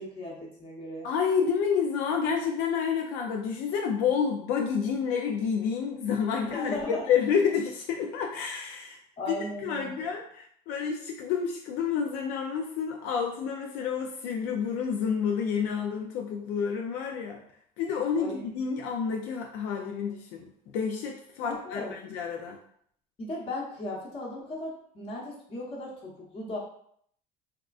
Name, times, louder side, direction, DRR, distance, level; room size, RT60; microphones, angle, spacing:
voice 1, 0.0-1.1 6.4-7.0 9.2-10.1 18.2-18.5 21.4-21.9 23.2-26.6, left 1 dB, 35° left, -5 dB, 0.9 m, -37 dB
voice 2, 1.0-9.0 9.3-9.4 9.6-17.4 17.8-22.6, left 6 dB, 80° left, 1 dB, 0.4 m, -29 dB
3.5 x 2.4 x 2.3 m, 0.65 s
cardioid pair, 105°, 17 cm